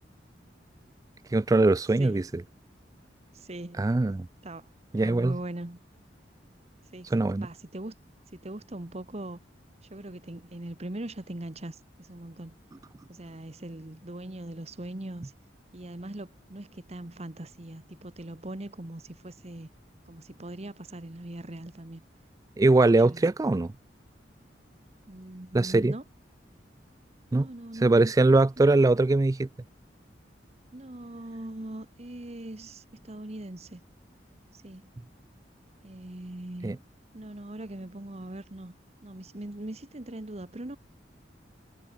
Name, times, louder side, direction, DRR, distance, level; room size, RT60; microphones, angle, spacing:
voice 1, 1.3-2.4 3.8-4.3 4.9-5.4 7.1-7.5 22.6-23.7 25.5-25.9 27.3-27.5 27.8-29.5 36.6-36.8, right 2 dB, 20° right, 0.3 m, -22 dB
voice 2, 3.3-3.9 4.4-4.7 5.0-5.8 6.9-7.9 8.3-9.4 9.9-12.6 13.1-15.3 15.7-19.7 20.1-22.0 23.0-23.2 25.1-26.0 27.3-28.1 28.6-29.0 30.7-33.8 34.5-34.8 35.8-36.8 37.1-38.7 39.0-40.8, right 1 dB, 35° right, 1.3 m, -41 dB
head